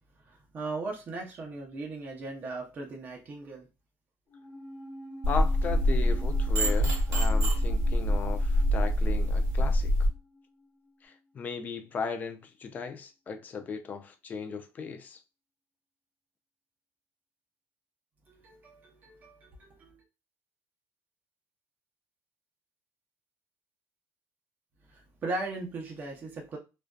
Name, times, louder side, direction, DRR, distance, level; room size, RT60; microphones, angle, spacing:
voice 1, 0.3-3.7 18.3-20.0 24.9-26.6, right 2 dB, 30° right, 0.6 m, -38 dB
sound 1, 4.3-10.9 11.1-11.2, equal, 60° left, 1.0 m, -47 dB
sound 2, 5.2-10.1, equal, 50° right, 1.0 m, -25 dB
voice 2, 5.3-9.9 11.0-15.2, left 5 dB, 30° left, 0.4 m, -37 dB
2.5 x 2.2 x 2.2 m
cardioid pair, 150°, 6 cm